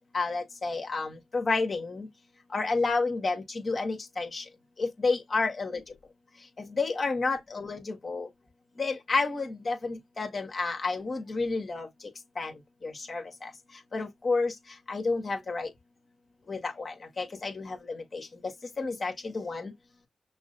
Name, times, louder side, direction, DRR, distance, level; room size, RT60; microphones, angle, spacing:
voice 1, 0.1-2.1 2.5-4.4 4.8-5.8 6.7-8.3 8.8-11.9 12.4-12.5 12.8-13.5 13.9-14.5 14.9-15.7 16.5-18.3 18.8-19.7, left 3 dB, 50° left, 1.5 m, -30 dB
6.1 x 2.0 x 2.6 m
supercardioid pair, 45°, 0 cm